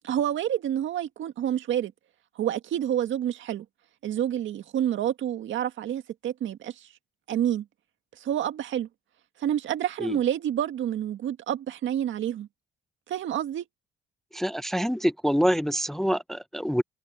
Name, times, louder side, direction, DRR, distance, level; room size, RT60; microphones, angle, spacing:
voice 1, 0.0-1.9 2.4-3.7 4.0-6.9 7.3-7.7 8.2-8.9 9.4-12.5 13.1-13.6, right 10 dB, 75° right, 1.9 m, -28 dB
voice 2, 14.3-16.8, equal, ahead, 0.6 m, -26 dB
cardioid pair, 90°, 20 cm